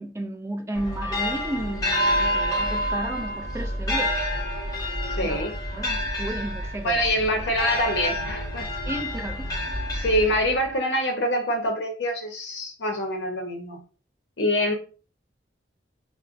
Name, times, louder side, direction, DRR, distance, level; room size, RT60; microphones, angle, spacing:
voice 1, 0.0-4.1 5.2-5.5 5.7-7.0 8.9-9.5, right 1 dB, 15° right, 0.3 m, -33 dB
sound 1, 0.7-10.7, equal, 20° left, 0.8 m, -28 dB
voice 2, 5.2-5.6 6.8-8.7 10.0-13.8 14.4-14.7, equal, 65° left, 0.7 m, -25 dB
5.0 x 2.1 x 2.4 m
head